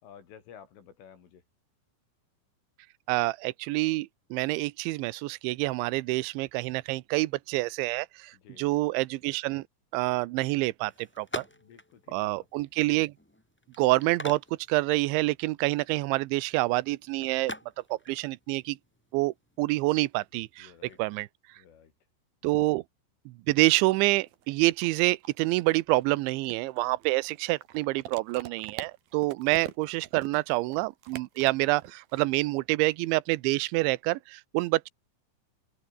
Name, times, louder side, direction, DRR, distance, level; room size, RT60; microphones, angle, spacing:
voice 1, 0.0-1.4 8.3-8.7 11.5-12.7 20.6-21.0 21.6-21.9 22.5-22.6, left 8 dB, 85° left, 6.4 m, -53 dB
voice 2, 3.1-9.6 9.9-11.5 12.1-13.1 13.8-14.4 14.7-17.5 17.9-18.8 19.1-20.7 21.0-21.3 22.4-22.8 23.3-34.9, right 21 dB, 85° right, 3.0 m, -27 dB
Electronic telephone handling in cradle, 10.8-21.3, equal, 5° left, 2.0 m, -46 dB
sound 1, 23.7-23.8 24.0-32.2, right 12 dB, 65° right, 2.7 m, -44 dB
omnidirectional pair, 5.6 m